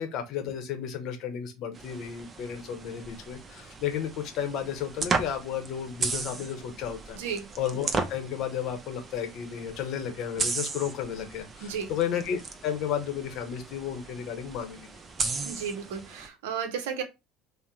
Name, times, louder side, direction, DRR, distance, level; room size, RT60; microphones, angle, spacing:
voice 1, 0.0-7.2 7.6-14.9, left 8 dB, 60° left, 0.7 m, -33 dB
sound 1, 1.7-16.3, right 4 dB, 35° right, 0.6 m, -36 dB
voice 2, 7.1-7.5 11.6-11.9 15.5-17.0, right 7 dB, 75° right, 0.6 m, -33 dB
2.7 x 2.0 x 3.5 m
hypercardioid pair, 70°, 0 cm